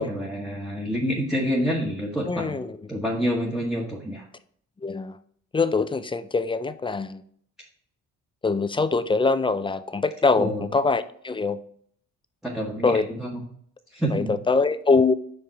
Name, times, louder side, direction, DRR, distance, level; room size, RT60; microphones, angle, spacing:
voice 1, 0.0-2.6 2.9-4.2 10.4-10.6 12.4-13.4 13.9-14.3, equal, ahead, -3 dB, 1.2 m, -27 dB
voice 2, 2.3-2.8 4.8-5.2 5.5-7.2 8.4-11.6 12.8-13.1 14.1-15.2, left 4 dB, 15° left, 13 dB, 0.4 m, -23 dB
5.2 x 4.8 x 4.3 m, 0.62 s
cardioid pair, 90°, 30 cm